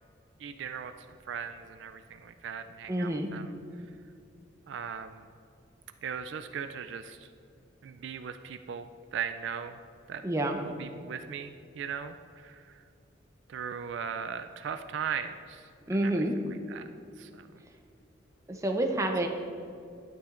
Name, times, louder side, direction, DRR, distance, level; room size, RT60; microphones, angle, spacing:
voice 1, 0.4-0.9 1.3-3.5 4.7-5.3 6.0-7.3 7.8-9.8 10.1-10.2 10.6-12.6 13.5-16.3 16.7-16.8 17.2-17.5, right 7 dB, 65° right, 9 dB, 0.3 m, -38 dB
voice 2, 2.9-3.3 10.2-10.6 15.9-16.3 18.5-19.3, right 1 dB, 15° right, 3 dB, 0.6 m, -28 dB
11.5 x 9.6 x 2.5 m, 2.5 s
head